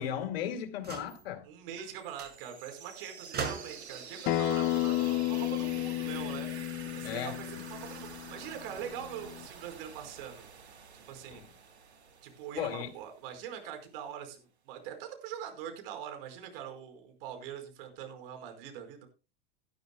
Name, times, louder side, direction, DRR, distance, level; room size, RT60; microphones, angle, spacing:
voice 1, 0.0-1.4 7.0-7.3 11.3-11.4 12.6-12.9, left 9 dB, 65° left, 2.4 m, -35 dB
sound 1, 0.8-1.3 1.8-1.9 2.2-2.4 3.3-4.0 5.2-6.3, right 6 dB, 30° right, 5.2 m, -40 dB
voice 2, 1.4-6.5 6.9-10.5 10.9-11.4 12.2-19.1, right 9 dB, 60° right, 4.9 m, -43 dB
sound 2, 1.8-13.5, right 6 dB, 85° right, 2.3 m, -48 dB
Acoustic guitar, 4.3-9.5, left 15 dB, 40° left, 0.8 m, -33 dB
18.5 x 11.5 x 2.3 m
hypercardioid pair, 95°, 32 cm